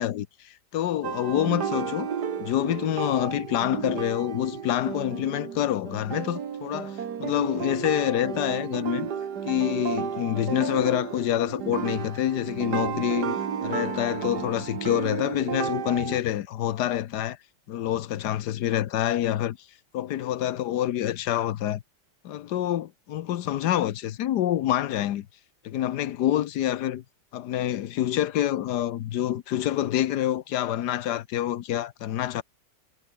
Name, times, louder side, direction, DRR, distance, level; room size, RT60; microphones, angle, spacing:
voice 1, 0.0-2.1 2.4-9.1 9.5-13.4 13.6-17.4 17.7-19.6 19.9-21.8 22.2-25.3 25.6-27.0 27.3-32.4, left 12 dB, 70° left, 1.4 m, -27 dB
sound 1, 1.0-16.2, right 7 dB, 65° right, 2.1 m, -32 dB
omnidirectional pair, 1.9 m